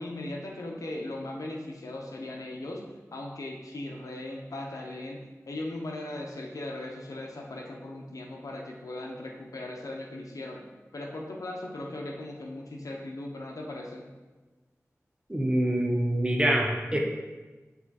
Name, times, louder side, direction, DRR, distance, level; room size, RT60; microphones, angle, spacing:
voice 1, 0.0-2.8 3.1-5.2 5.5-10.6 10.9-14.1, left 1 dB, 85° left, 0 dB, 0.8 m, -38 dB
voice 2, 15.3-17.0, right 1 dB, 15° right, 0 dB, 1.0 m, -25 dB
7.1 x 3.4 x 4.2 m, 1.2 s
wide cardioid pair, 55°, 6 cm